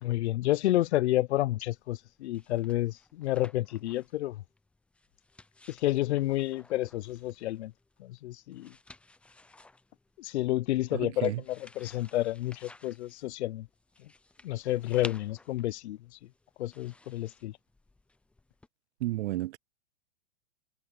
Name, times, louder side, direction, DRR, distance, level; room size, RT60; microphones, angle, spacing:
voice 1, 0.0-4.4 5.7-7.7 8.0-8.7 10.2-13.7 14.4-16.0 16.6-17.6, left 15 dB, 70° left, 0.8 m, -30 dB
sound 1, 1.4-18.7, left 2 dB, 5° left, 0.7 m, -54 dB
voice 2, 10.9-11.4 19.0-19.6, right 16 dB, 75° right, 0.5 m, -32 dB
supercardioid pair, 150°, 34 cm